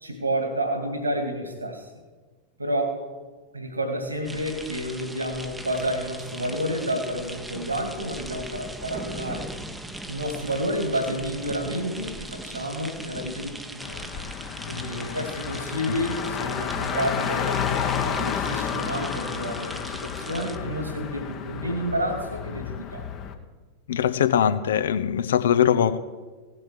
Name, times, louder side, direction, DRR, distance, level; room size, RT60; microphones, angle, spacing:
voice 1, 0.0-1.9 2.6-3.0 3.5-9.5 10.1-14.0 14.7-23.1, equal, 80° right, 6 dB, 2.2 m, -30 dB
sound 1, 4.2-20.6, right 1 dB, 5° right, 0.9 m, -39 dB
Car, 13.8-23.3, left 8 dB, 35° left, 1.2 m, -31 dB
voice 2, 23.9-26.0, left 9 dB, 60° left, 12 dB, 0.7 m, -21 dB
16.5 x 7.6 x 7.5 m, 1.3 s
figure-of-eight pair, 90°, 0 cm